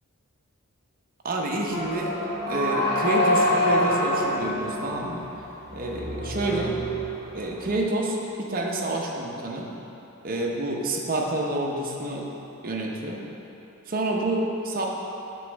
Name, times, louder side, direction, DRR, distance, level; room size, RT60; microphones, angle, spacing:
voice 1, 1.2-2.2 2.5-5.3 5.7-6.8 7.3-9.7 10.2-12.3 12.6-13.2 13.9-14.8, right 1 dB, 40° right, -1 dB, 0.7 m, -28 dB
sound 1, 1.7-7.7, left 1 dB, 45° left, 1.6 m, -26 dB
7.9 x 3.1 x 6.1 m, 3.0 s
head